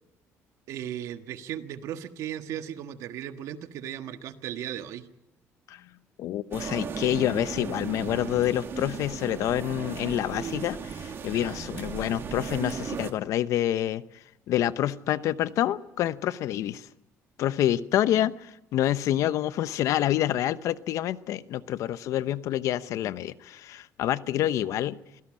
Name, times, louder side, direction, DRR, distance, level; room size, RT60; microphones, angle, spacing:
voice 1, 0.7-5.1 11.3-11.6, right 10 dB, 70° right, 8 dB, 1.5 m, -36 dB
voice 2, 6.2-14.0 14.5-16.9 17.4-25.0, left 12 dB, 70° left, 15 dB, 0.8 m, -27 dB
sound 1, 6.5-13.1, right 6 dB, 45° right, 2.2 m, -36 dB
25.5 x 17.0 x 7.6 m, 0.88 s
cardioid pair, 120°, 6 cm